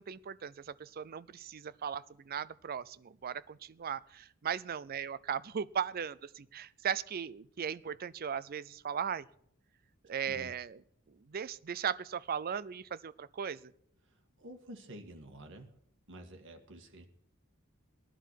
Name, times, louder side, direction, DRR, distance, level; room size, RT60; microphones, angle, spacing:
voice 1, 0.0-9.3 10.1-10.8 11.1-13.7, right 7 dB, 45° right, 17 dB, 0.5 m, -37 dB
voice 2, 14.1-15.8 16.1-17.1, right 1 dB, 60° right, 5 dB, 1.8 m, -50 dB
18.5 x 11.0 x 4.6 m, 0.72 s
head